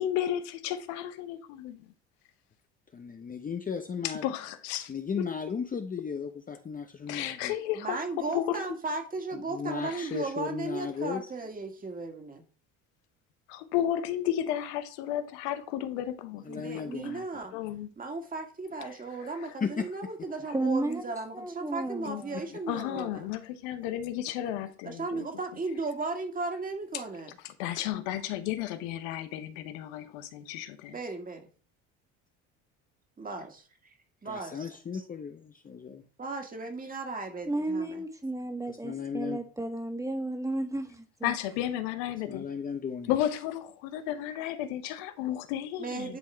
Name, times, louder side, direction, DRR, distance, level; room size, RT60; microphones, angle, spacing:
voice 1, 0.0-1.8 4.0-4.9 5.2-5.3 7.1-8.6 9.8-10.2 13.5-17.2 17.5-17.9 19.2-19.5 20.4-20.5 22.0-22.4 22.7-25.3 26.9-27.0 27.4-30.9 41.2-42.5 43.1-46.2, left 11 dB, 85° left, 1.0 m, -33 dB
voice 2, 2.9-4.3 4.9-7.5 9.3-11.2 16.4-17.6 19.6-19.9 22.3-22.6 34.2-36.0 38.7-39.4 42.3-43.1, left 6 dB, 25° left, 0.8 m, -36 dB
voice 3, 7.8-12.4 16.5-17.5 18.0-23.2 24.8-27.4 30.9-31.5 33.2-33.7 34.2-35.0 36.2-38.0 45.8-46.2, right 3 dB, 25° right, 2.0 m, -36 dB
voice 4, 20.5-22.5 37.5-41.3, right 2 dB, 10° right, 1.7 m, -33 dB
10.5 x 3.6 x 4.5 m
supercardioid pair, 90°, 33 cm